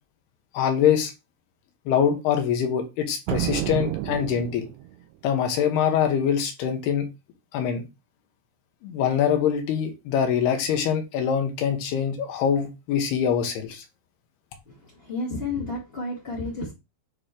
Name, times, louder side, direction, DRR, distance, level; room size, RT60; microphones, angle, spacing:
voice 1, 0.5-1.1 1.9-4.7 5.2-7.1 7.5-7.8 8.8-13.8, left 8 dB, 75° left, 3.1 m, -24 dB
sound 1, 3.3-5.0, right 14 dB, 85° right, 2.7 m, -30 dB
voice 2, 14.6-16.7, left 2 dB, 25° left, 1.4 m, -31 dB
9.0 x 3.2 x 3.7 m
omnidirectional pair, 4.8 m